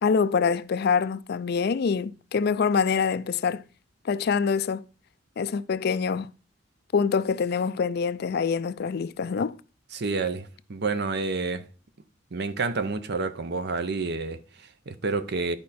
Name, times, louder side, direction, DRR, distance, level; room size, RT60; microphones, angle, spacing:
voice 1, 0.0-3.6 4.0-4.8 5.4-6.3 6.9-9.5, left 5 dB, 55° left, 0.4 m, -25 dB
voice 2, 9.9-11.7 12.3-15.6, right 3 dB, 55° right, 0.8 m, -29 dB
11.0 x 5.2 x 4.2 m
head